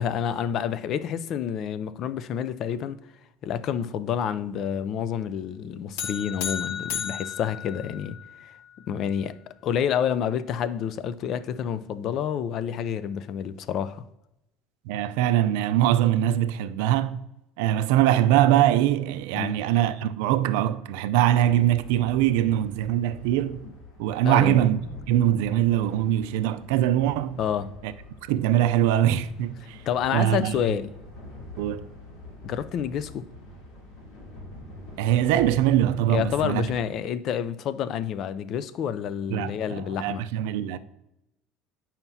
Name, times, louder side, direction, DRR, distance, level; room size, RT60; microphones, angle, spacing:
voice 1, 0.0-3.0 3.4-8.5 8.9-9.4 9.6-14.0 19.3-19.6 24.2-24.6 27.4-27.7 29.9-30.9 32.4-33.3 36.1-40.2, left 8 dB, 50° left, 0.4 m, -28 dB
sound 1, 6.0-8.4, left 8 dB, 85° left, 0.9 m, -33 dB
voice 2, 14.9-17.2 17.6-23.6 24.0-24.8 25.1-27.4 27.8-27.9 28.2-29.8 30.1-30.6 31.6-31.9 35.0-36.7 39.3-40.8, right 12 dB, 85° right, 0.4 m, -22 dB
sound 2, 21.2-36.8, left 1 dB, 70° left, 2.7 m, -44 dB
9.0 x 5.7 x 2.7 m
cardioid pair, 130°, 0 cm